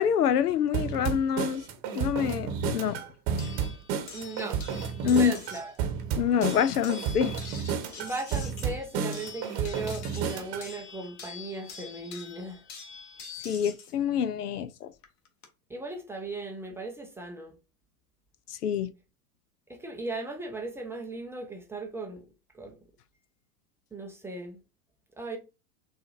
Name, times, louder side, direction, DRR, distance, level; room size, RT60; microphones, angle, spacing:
voice 1, 0.0-1.6 1.9-3.0 5.0-5.3 6.2-7.3 13.4-14.9 18.5-18.9, left 8 dB, 85° left, 0.6 m, -26 dB
sound 1, 0.7-10.7, right 7 dB, 40° right, 0.9 m, -32 dB
sound 2, 3.4-5.8 6.4-13.9 15.0-15.5, left 6 dB, 40° left, 1.3 m, -45 dB
voice 2, 4.1-4.7 5.0-5.7 8.0-12.6 15.7-17.6 19.7-22.2 22.5-22.8 23.9-24.6 25.2-25.4, right 2 dB, 5° right, 0.4 m, -37 dB
6.3 x 2.5 x 2.5 m
hypercardioid pair, 100°, 45 cm